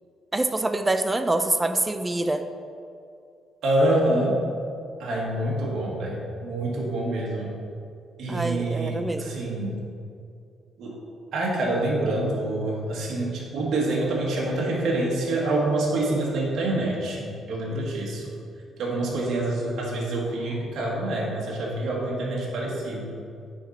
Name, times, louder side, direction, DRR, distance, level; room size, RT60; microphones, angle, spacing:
voice 1, 0.3-2.4 8.3-9.4, right 2 dB, 20° right, 8 dB, 0.4 m, -25 dB
voice 2, 3.6-4.4 5.0-7.5 8.2-9.8 10.8-10.9 11.3-18.3 18.8-23.1, right 1 dB, 70° right, -4 dB, 1.4 m, -26 dB
9.6 x 3.9 x 4.2 m, 2.4 s
cardioid pair, 90°, 0 cm